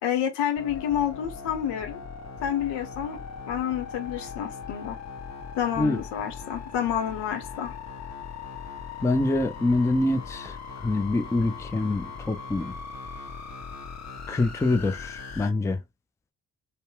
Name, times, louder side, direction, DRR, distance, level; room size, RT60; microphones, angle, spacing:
voice 1, 0.0-2.0 2.4-3.2 3.5-5.0 5.6-7.7, left 9 dB, 75° left, 0.8 m, -29 dB
sound 1, 0.6-15.5, left 5 dB, 40° left, 0.9 m, -39 dB
voice 2, 9.0-10.6 10.8-12.7 14.3-15.8, left 2 dB, 5° left, 0.4 m, -25 dB
2.8 x 2.1 x 2.2 m
hypercardioid pair, 45°, 42 cm